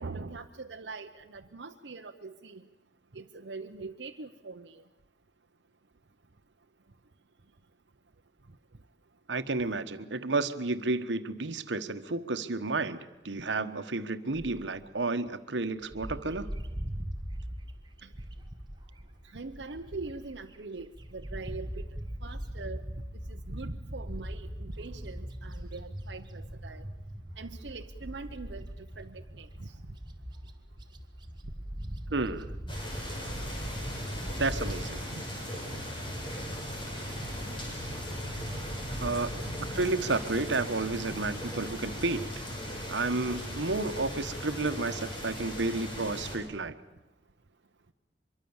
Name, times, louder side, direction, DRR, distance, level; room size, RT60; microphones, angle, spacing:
voice 1, 0.0-2.6 3.1-4.7 18.0-18.1 19.3-21.9 22.2-22.8 23.5-26.8 27.4-28.7 29.0-29.7 35.1-35.2, right 3 dB, 75° right, 3 dB, 0.9 m, -42 dB
voice 2, 9.3-16.5 32.1-32.5 34.4-35.0 39.0-39.3 39.7-42.5 42.9-46.8, right 3 dB, 90° right, 10 dB, 1.3 m, -31 dB
Bird, 15.9-20.4 20.8-35.0, equal, 25° right, 1.8 m, -40 dB
sound 1, 32.7-46.4, equal, 30° left, 6.0 m, -38 dB
24.5 x 23.0 x 7.2 m, 1.0 s
head